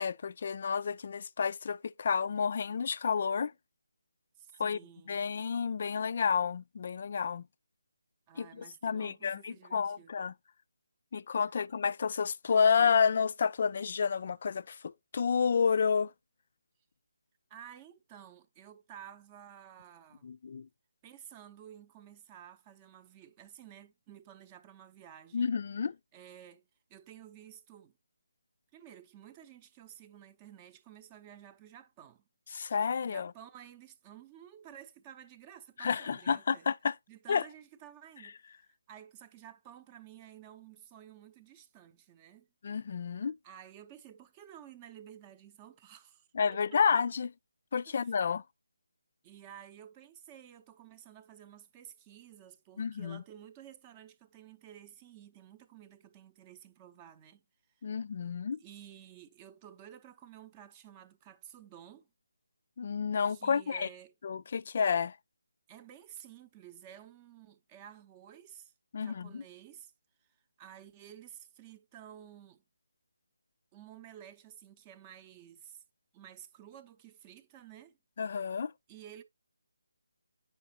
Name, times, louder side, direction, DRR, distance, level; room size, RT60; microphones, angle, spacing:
voice 1, 0.0-3.5 4.6-4.8 5.1-7.4 8.4-10.3 11.1-16.1 20.2-20.7 25.3-25.9 32.5-33.3 35.8-36.9 37.3-37.4 42.6-43.3 46.3-47.3 47.7-48.4 52.8-53.2 57.8-58.6 62.8-63.9 64.2-65.2 68.9-69.4 78.2-78.7, left 6 dB, 45° left, 0.3 m, -30 dB
voice 2, 4.4-5.2 8.3-10.2 17.5-20.3 21.0-25.6 26.1-27.9 28.7-32.2 33.0-36.7 37.1-42.5 43.4-47.0 47.9-48.1 49.2-57.4 58.6-62.1 63.3-64.1 65.7-69.9 70.2-72.6 73.7-75.8 76.1-78.0 78.9-79.2, right 10 dB, 20° right, 0.6 m, -53 dB
8.7 x 5.6 x 2.8 m
figure-of-eight pair, 150°, 0 cm